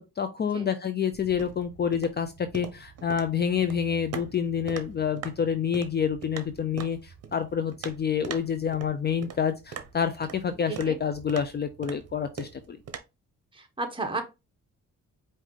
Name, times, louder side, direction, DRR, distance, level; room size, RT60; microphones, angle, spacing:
voice 1, 0.2-12.8, left 7 dB, 35° left, 0.5 m, -28 dB
sound 1, 1.1-13.0, right 7 dB, 55° right, 0.9 m, -43 dB
voice 2, 13.5-14.2, right 3 dB, 15° right, 1.3 m, -32 dB
4.8 x 2.7 x 3.7 m
cardioid pair, 90°, 30 cm